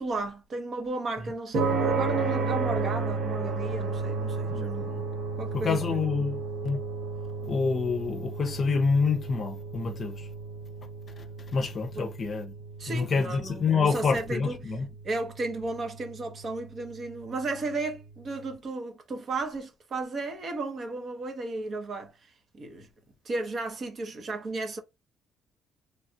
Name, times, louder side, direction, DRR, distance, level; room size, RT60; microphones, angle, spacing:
voice 1, 0.0-5.0 5.4-6.1 11.9-12.1 12.8-14.7 15.0-22.9 23.2-24.8, right 3 dB, 40° right, 0.9 m, -34 dB
sound 1, 1.5-18.0, right 4 dB, 60° right, 1.7 m, -33 dB
voice 2, 4.5-5.0 5.5-6.8 7.4-10.3 11.2-11.3 11.5-12.5 12.9-14.9, left 5 dB, 40° left, 0.7 m, -27 dB
3.3 x 2.3 x 2.7 m
cardioid pair, 120°, 0 cm